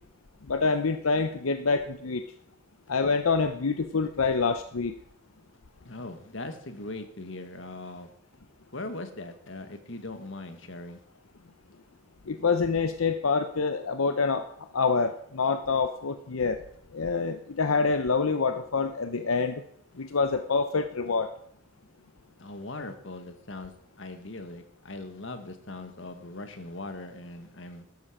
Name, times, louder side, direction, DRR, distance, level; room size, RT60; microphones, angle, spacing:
voice 1, 0.5-2.2 2.9-4.9 12.3-16.6 16.9-19.6 20.0-21.3, left 4 dB, 90° left, 9 dB, 0.7 m, -26 dB
voice 2, 5.8-8.1 8.7-11.0 22.4-27.8, left 2 dB, 65° left, 8 dB, 1.6 m, -40 dB
13.0 x 12.0 x 5.0 m, 0.68 s
head